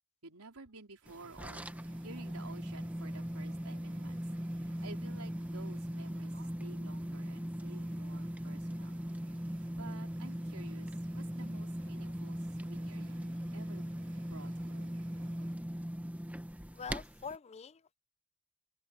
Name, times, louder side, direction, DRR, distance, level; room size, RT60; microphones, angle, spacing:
voice 1, 0.2-1.7 2.0-4.3 4.5-6.3 6.6-9.0 9.7-13.9 14.3-15.0, right 3 dB, 90° right, 4.2 m, -53 dB
sound 1, 1.0-15.6, right 4 dB, 60° right, 2.5 m, -63 dB
sound 2, 1.1-17.4, equal, 5° right, 0.9 m, -40 dB
voice 2, 16.7-18.0, left 6 dB, 30° left, 0.4 m, -44 dB
open air
head